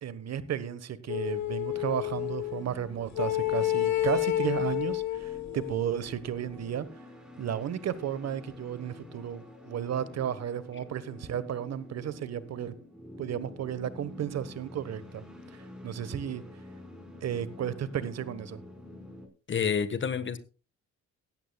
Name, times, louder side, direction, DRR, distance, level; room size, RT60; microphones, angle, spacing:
voice 1, 0.0-6.9 7.4-12.8 13.2-15.2 15.8-16.4 17.2-18.6, right 9 dB, 60° right, 1.3 m, -33 dB
sound 1, 1.1-2.6 3.2-5.9, left 14 dB, 65° left, 1.4 m, -30 dB
sound 2, 1.7-19.3, left 1 dB, ahead, 4.9 m, -48 dB
voice 2, 19.5-20.4, left 6 dB, 40° left, 1.4 m, -28 dB
17.0 x 13.5 x 2.3 m
cardioid pair, 90°, 30 cm